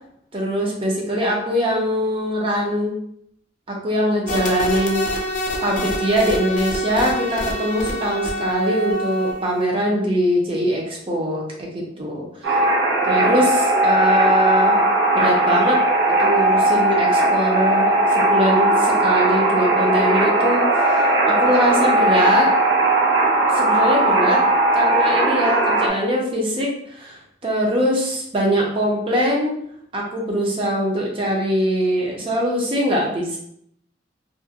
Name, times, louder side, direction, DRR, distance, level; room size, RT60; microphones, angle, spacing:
voice 1, 0.3-2.9 3.7-5.1 5.6-12.6 13.0-14.8 15.1-15.8 16.2-22.5 23.5-24.4 24.7-29.6 29.9-33.4, equal, 30° right, -1 dB, 0.5 m, -22 dB
sound 1, 4.3-9.6, equal, 45° left, 0.4 m, -26 dB
sound 2, 12.4-25.9, right 2 dB, 85° right, 0.6 m, -18 dB
2.4 x 2.1 x 2.7 m, 0.70 s
head